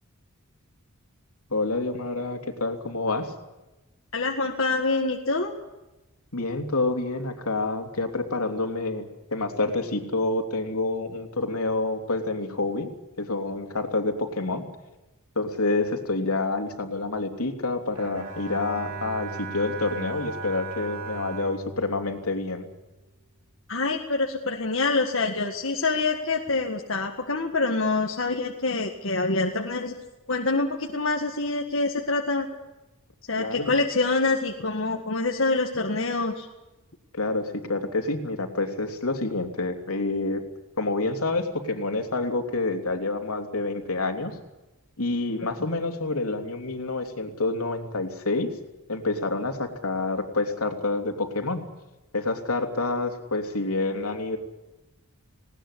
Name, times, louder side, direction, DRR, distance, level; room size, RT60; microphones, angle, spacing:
voice 1, 1.5-3.3 6.3-12.9 13.2-14.6 15.3-22.7 33.4-33.7 37.1-40.4 40.8-44.3 45.0-48.5 48.9-51.6 52.1-54.4, left 2 dB, 85° left, 5 dB, 3.2 m, -28 dB
voice 2, 4.1-5.5 23.7-29.9 30.3-32.5 33.3-36.5, left 3 dB, 60° left, 2 dB, 1.9 m, -26 dB
Bowed string instrument, 17.9-23.2, right 3 dB, 80° right, 3.6 m, -38 dB
20.0 x 19.0 x 10.0 m, 1.0 s
head